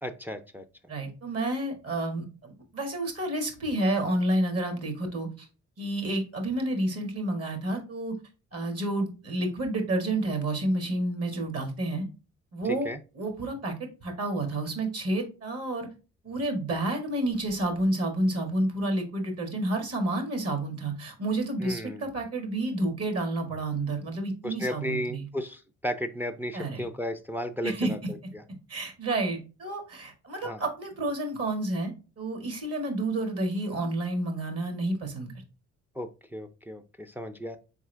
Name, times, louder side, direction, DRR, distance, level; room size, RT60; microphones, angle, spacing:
voice 1, 0.0-0.6 12.6-13.0 21.6-22.1 24.4-28.0 28.3-28.4 30.4-30.6 36.0-37.6, equal, 5° right, 7 dB, 0.4 m, -34 dB
voice 2, 0.9-5.5 5.8-8.1 8.5-12.0 12.5-12.9 13.1-13.7 14.0-15.9 16.2-25.3 26.5-26.9 27.6-27.9 28.7-35.3, right 1 dB, 50° right, 5 dB, 1.7 m, -30 dB
4.4 x 3.6 x 3.3 m, 0.32 s
cardioid pair, 90°, 30 cm